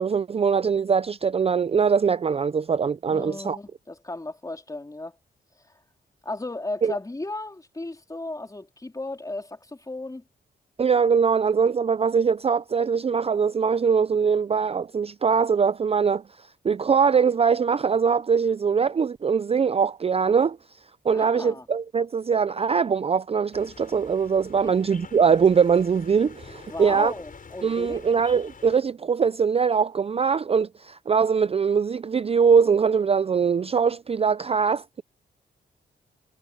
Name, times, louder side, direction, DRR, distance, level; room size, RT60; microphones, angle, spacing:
voice 1, 0.0-3.6 6.8-7.0 10.8-16.2 16.6-20.6 21.0-27.1 27.6-35.0, right 6 dB, 30° right, 0.4 m, -22 dB
voice 2, 3.1-5.2 6.2-10.2 21.1-21.7 24.6-24.8 26.5-28.1, left 2 dB, 20° left, 4.0 m, -35 dB
sound 1, 23.5-28.8, left 5 dB, 45° left, 6.6 m, -47 dB
cardioid pair, 90°, 19 cm